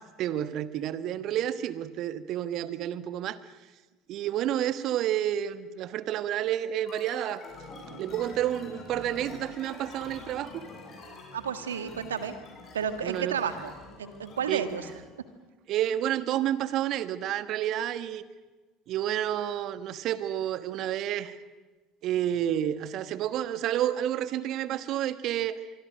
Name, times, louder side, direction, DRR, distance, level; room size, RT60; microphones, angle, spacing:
voice 1, 0.2-3.4 4.1-7.4 7.9-10.6 13.0-13.4 14.5-14.6 15.7-18.2 18.9-21.4 22.0-25.6, right 11 dB, 50° right, 13 dB, 1.3 m, -30 dB
sound 1, 6.9-15.1, left 3 dB, 40° left, 7.7 m, -46 dB
voice 2, 11.3-12.3 12.7-13.7 14.0-14.8, right 7 dB, 80° right, 10 dB, 1.7 m, -31 dB
25.0 x 24.0 x 6.5 m, 1.2 s
figure-of-eight pair, 65°, 0 cm